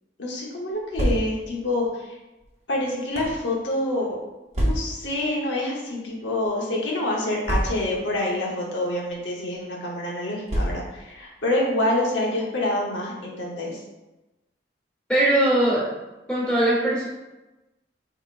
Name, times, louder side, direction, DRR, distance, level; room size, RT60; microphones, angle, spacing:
voice 1, 0.2-2.2 2.7-4.2 4.6-13.8, left 1 dB, 80° left, -3 dB, 1.0 m, -27 dB
sound 1, 0.7-1.6 2.4-3.4 4.5-5.1 6.0-6.2 6.4-6.5 7.4-8.1 9.0-9.2 10.5-11.1, equal, 35° right, 0.8 m, -27 dB
voice 2, 15.1-15.9 16.3-17.1, right 1 dB, 5° left, -8 dB, 1.4 m, -20 dB
4.6 x 3.7 x 2.5 m, 1.0 s
head